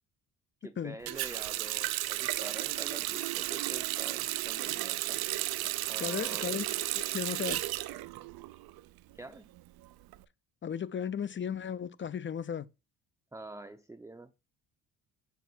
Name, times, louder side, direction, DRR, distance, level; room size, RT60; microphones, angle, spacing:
voice 1, 0.6-5.2 5.9-6.5 9.1-9.5 13.3-14.3, right 2 dB, 5° right, 0.6 m, -46 dB
Water tap faucet, 1.1-8.8 9.1-10.2, right 16 dB, 65° right, 0.6 m, -34 dB
voice 2, 6.0-6.7 6.9-7.6 10.6-12.7, left 8 dB, 30° left, 0.6 m, -35 dB
7.3 x 3.5 x 4.1 m
supercardioid pair, 60°, 40 cm